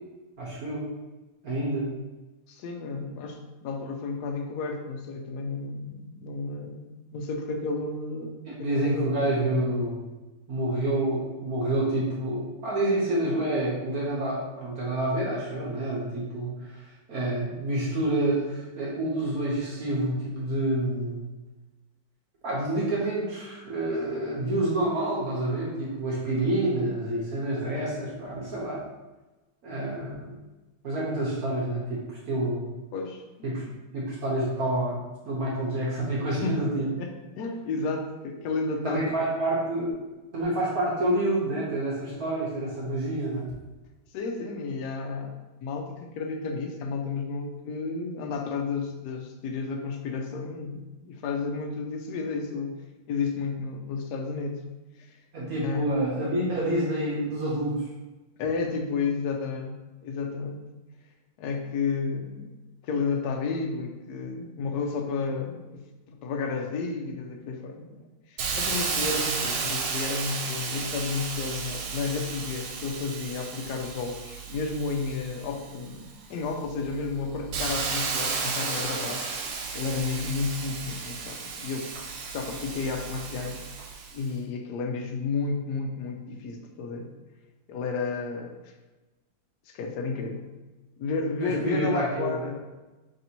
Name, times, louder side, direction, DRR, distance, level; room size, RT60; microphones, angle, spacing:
voice 1, 0.4-0.8 1.4-1.9 8.5-10.0 10.5-16.7 17.1-21.3 22.4-28.8 29.6-30.4 30.8-32.7 33.4-33.6 33.9-35.0 35.3-36.9 38.8-39.9 40.3-43.5 55.3-57.8 91.4-92.3, right 1 dB, 60° right, -5 dB, 1.1 m, -28 dB
voice 2, 2.5-8.3 8.6-9.1 32.9-33.5 36.4-39.1 44.1-45.3 45.6-52.7 53.1-54.6 55.0-55.2 55.6-55.8 58.4-60.7 61.4-62.5 62.8-79.2 79.7-81.9 82.3-83.6 84.1-87.1 87.7-88.7 89.7-90.5 91.0-92.6, left 4 dB, 80° left, 2 dB, 0.9 m, -32 dB
Hiss, 68.4-76.0 76.5-84.2, right 5 dB, 80° right, 1.4 m, -33 dB
3.4 x 2.7 x 4.2 m, 1.1 s
omnidirectional pair, 2.2 m